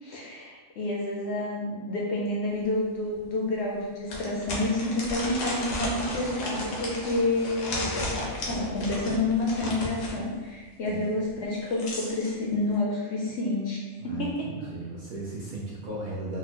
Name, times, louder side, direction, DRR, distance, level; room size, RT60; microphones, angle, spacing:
voice 1, 0.0-14.5, left 2 dB, 65° left, -3 dB, 0.7 m, -29 dB
sound 1, 2.6-2.7 3.2-3.3 4.1-10.2 11.4-12.3, left 1 dB, 90° left, 1.2 m, -34 dB
voice 2, 14.0-16.4, right 2 dB, 60° right, -6 dB, 0.5 m, -36 dB
4.0 x 2.1 x 2.8 m, 1.3 s
omnidirectional pair, 1.4 m